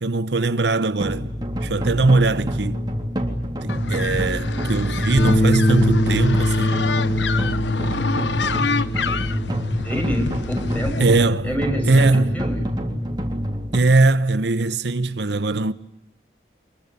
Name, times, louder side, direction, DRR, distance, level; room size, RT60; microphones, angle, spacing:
voice 1, 0.0-1.3 1.6-2.8 3.6-6.8 11.0-11.6 11.9-12.4 13.7-15.7, right 3 dB, 70° right, 1.0 m, -20 dB
sound 1, 1.0-13.8, equal, 25° right, 3.6 m, -27 dB
sound 2, 3.7-11.1, left 4 dB, 80° left, 1.1 m, -29 dB
Bass guitar, 5.2-11.4, left 1 dB, 30° left, 4.8 m, -23 dB
voice 2, 9.8-11.1 11.4-12.6, equal, 10° left, 7.1 m, -27 dB
25.0 x 22.5 x 9.9 m
head